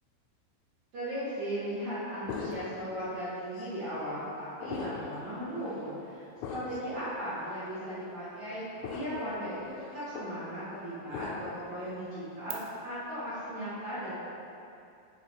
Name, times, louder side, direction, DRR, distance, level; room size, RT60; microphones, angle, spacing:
voice 1, 0.9-14.1, equal, 60° right, -12 dB, 1.9 m, -37 dB
sound 1, 2.3-2.9 3.6-3.7 4.6-5.2 5.6-5.8 6.4-6.9 7.6-7.7 8.8-9.3 9.6-10.3 11.1-11.6, left 5 dB, 80° left, 2.9 m, -40 dB
sound 2, 2.5-12.5, right 19 dB, 80° right, 3.0 m, -55 dB
10.0 x 3.7 x 4.7 m, 2.6 s
omnidirectional pair, 5.6 m